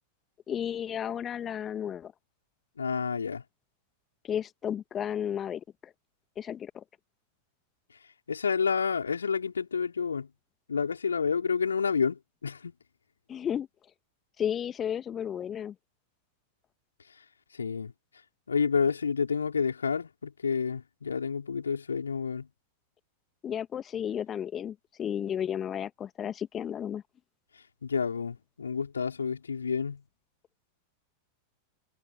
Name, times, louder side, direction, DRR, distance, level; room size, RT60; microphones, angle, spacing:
voice 1, 0.5-2.1 4.2-5.9 6.4-6.8 13.3-13.7 14.4-15.7 23.4-27.0, left 9 dB, 25° left, 2.0 m, -33 dB
voice 2, 2.8-3.4 8.3-10.3 10.7-12.7 17.5-17.9 18.5-22.5 27.8-30.0, left 6 dB, 75° left, 4.2 m, -29 dB
figure-of-eight pair, 90°, 0 cm